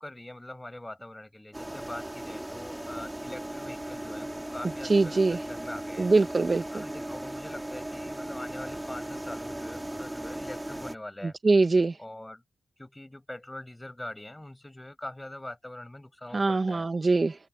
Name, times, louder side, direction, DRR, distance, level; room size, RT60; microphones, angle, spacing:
voice 1, 0.0-6.1 6.7-11.4 12.0-12.4 12.8-16.9, left 1 dB, 15° left, 6.4 m, -43 dB
sound 1, 1.5-11.0, right 1 dB, 10° right, 3.1 m, -37 dB
voice 2, 4.9-5.4 6.0-6.6 11.4-12.0 16.3-17.4, right 3 dB, 35° right, 1.5 m, -22 dB
open air
cardioid pair, 65°, 0 cm